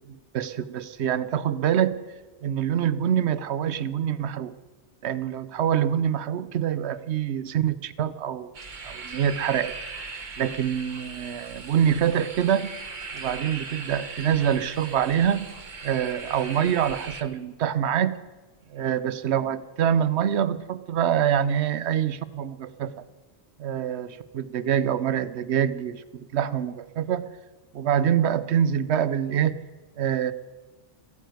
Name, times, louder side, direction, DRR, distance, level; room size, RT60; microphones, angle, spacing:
voice 1, 0.1-1.9 2.4-4.5 5.0-8.5 8.8-9.7 10.4-12.7 13.1-15.5 15.8-18.2 18.7-22.9 23.6-27.3 27.7-29.6 30.0-30.3, right 9 dB, 75° right, 15 dB, 1.0 m, -25 dB
sound 1, 8.5-17.2, right 4 dB, 45° right, 1.2 m, -39 dB
14.0 x 9.3 x 9.2 m, 1.2 s
omnidirectional pair, 1.1 m